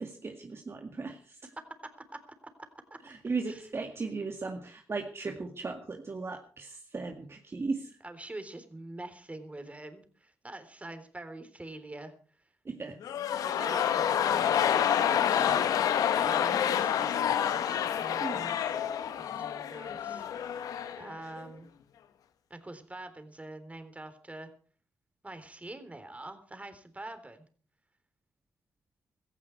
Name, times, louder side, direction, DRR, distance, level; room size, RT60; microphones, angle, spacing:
voice 1, 0.0-1.4 3.0-8.0 12.6-13.0 15.4-15.6 18.2-18.6, right 4 dB, 45° right, 3 dB, 2.0 m, -37 dB
voice 2, 1.6-2.2 2.6-3.0 3.5-3.6 8.0-12.1 13.4-15.5 16.1-18.7 19.2-20.3 21.0-21.7 22.5-24.5 25.2-27.5, right 2 dB, 20° right, 9 dB, 3.6 m, -45 dB
sound 1, 13.0-21.1 21.4-21.5, left 9 dB, 75° left, 1.1 m, -28 dB
16.5 x 14.5 x 4.7 m, 0.42 s
supercardioid pair, 45°, 6 cm